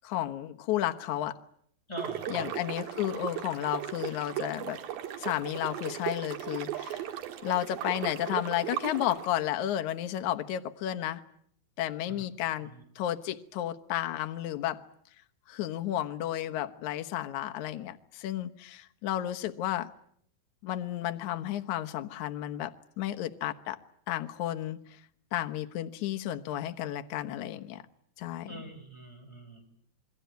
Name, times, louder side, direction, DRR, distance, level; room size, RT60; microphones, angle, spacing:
voice 1, 0.0-1.4 2.3-4.8 5.2-7.0 7.4-11.2 11.8-12.7 13.0-14.8 15.5-19.9 20.6-23.8 24.1-24.8 25.3-27.8 28.2-28.6, left 12 dB, 65° left, 2.4 m, -32 dB
voice 2, 1.9-2.5 12.1-12.2 12.7-12.8 28.4-29.7, equal, 5° left, 5.6 m, -42 dB
sound 1, 2.0-9.3, right 11 dB, 75° right, 3.3 m, -37 dB
28.5 x 21.5 x 9.3 m
omnidirectional pair, 4.2 m